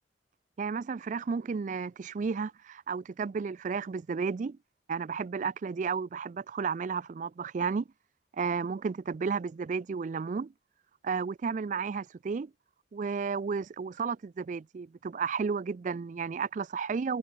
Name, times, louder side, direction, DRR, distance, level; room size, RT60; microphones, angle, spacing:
voice 1, 0.6-4.6 4.9-7.8 8.4-10.5 11.0-12.5 12.9-17.2, right 5 dB, 40° right, 0.3 m, -32 dB
head